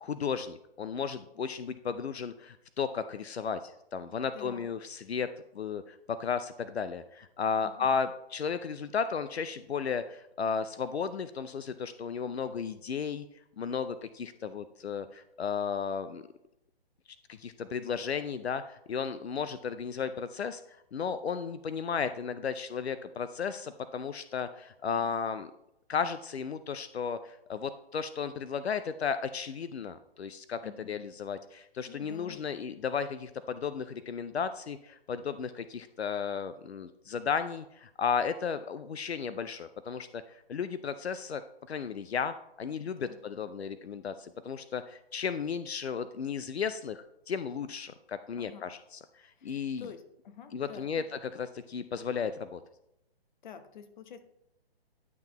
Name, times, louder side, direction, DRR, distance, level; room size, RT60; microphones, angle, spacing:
voice 1, 0.0-5.3 5.5-13.3 13.6-16.2 17.3-20.6 20.9-25.5 25.9-30.6 30.9-41.4 41.7-49.9 50.5-51.0 51.3-52.6, left 6 dB, 85° left, 12 dB, 0.6 m, -34 dB
voice 2, 4.3-4.7 7.6-7.9 30.6-30.9 31.9-32.4 43.0-43.2 48.4-48.7 49.4-51.1 53.4-54.2, left 7 dB, 50° left, 9 dB, 1.0 m, -48 dB
11.0 x 6.0 x 3.0 m, 0.82 s
figure-of-eight pair, 135°, 31 cm